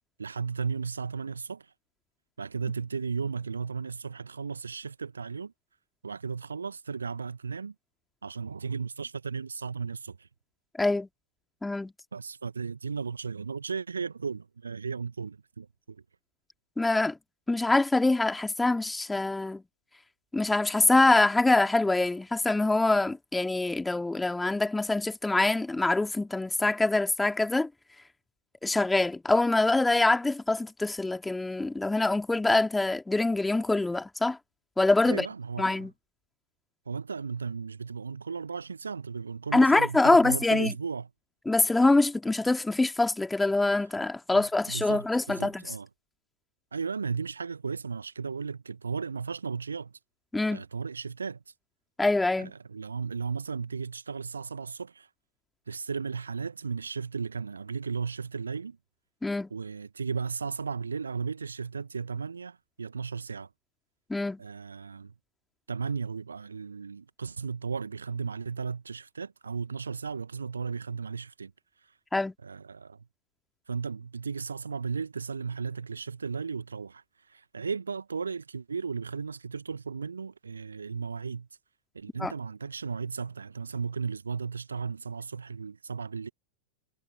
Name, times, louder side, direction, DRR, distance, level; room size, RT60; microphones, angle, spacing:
voice 1, 0.2-1.7 2.4-5.5 6.0-7.7 8.2-10.3 12.1-16.0 35.0-35.9 36.9-41.1 44.3-45.9 46.7-49.9 50.5-51.4 52.4-55.1 55.7-58.8 59.5-63.5 64.4-65.1 65.7-71.5 72.4-73.1 73.7-77.0 77.3-81.5 81.9-86.3, right 5 dB, 75° right, 1.7 m, -35 dB
voice 2, 10.8-11.1 11.6-11.9 16.8-17.2 17.5-19.6 20.3-27.7 28.6-34.4 34.8-35.3 35.6-35.9 39.5-40.7 41.5-45.6 50.3-50.6 52.0-52.5 59.2-59.5 64.1-64.4 72.1-72.3 82.2-82.3, left 2 dB, 5° left, 2.4 m, -24 dB
figure-of-eight pair, 90°, 0 cm